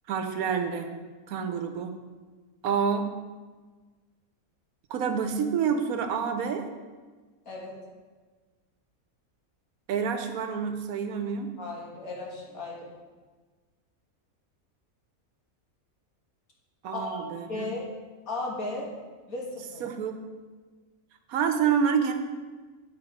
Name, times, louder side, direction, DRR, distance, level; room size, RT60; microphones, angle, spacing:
voice 1, 0.1-0.9 1.3-1.9 2.6-3.1 4.9-6.7 9.9-11.5 16.8-17.7 19.8-20.2 21.3-22.1, right 7 dB, 85° right, 6 dB, 1.2 m, -28 dB
voice 2, 7.5-7.8 11.6-12.9 16.9-17.9 18.3-18.9 19.3-19.8, left 2 dB, 75° left, -3 dB, 2.1 m, -35 dB
9.8 x 4.3 x 4.9 m, 1.4 s
omnidirectional pair, 1.5 m